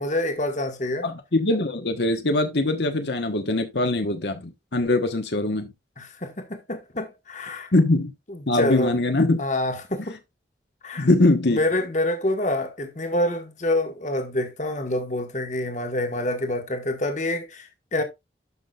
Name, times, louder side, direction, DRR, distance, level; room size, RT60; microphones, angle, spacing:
voice 1, 0.0-1.1 6.0-7.7 8.5-8.9 9.4-10.2 10.8-11.1 11.5-18.0, left 1 dB, 40° left, 1.5 m, -27 dB
voice 2, 1.0-5.7 7.7-8.1 8.5-9.4 11.0-11.6, left 2 dB, 70° left, 1.2 m, -22 dB
12.5 x 6.0 x 2.4 m
head